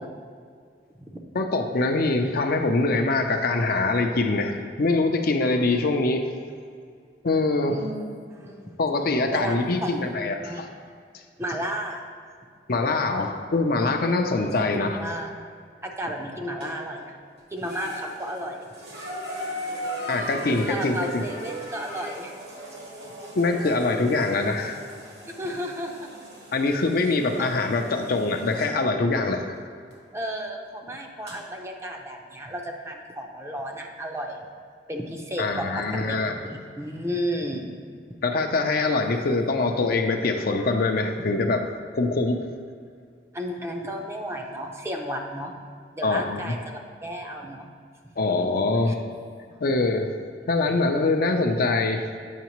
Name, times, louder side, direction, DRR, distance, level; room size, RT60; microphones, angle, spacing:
voice 1, 1.3-6.2 7.2-7.8 8.8-10.7 12.7-15.0 20.1-21.2 23.4-24.8 26.5-29.4 35.4-36.3 38.2-41.6 41.9-42.5 46.0-46.5 48.2-49.0 49.6-50.1 50.5-52.0, left 3 dB, 55° left, 4 dB, 0.5 m, -24 dB
voice 2, 7.7-8.0 8.3-8.8 9.3-9.6 9.8-10.6 11.4-12.0 14.0-14.4 14.7-15.3 15.8-17.1 17.5-18.7 20.2-22.3 25.4-26.1 27.0-27.6 30.1-34.4 34.9-36.2 36.4-37.9 38.8-39.0 43.3-45.5 45.9-47.7 48.9-49.0, equal, 15° right, 2 dB, 0.5 m, -33 dB
sound 1, 16.6-17.1 17.6-28.8 29.9-30.0 31.3-31.4, equal, 65° right, 1.4 m, -38 dB
8.2 x 5.7 x 3.0 m, 2.2 s
head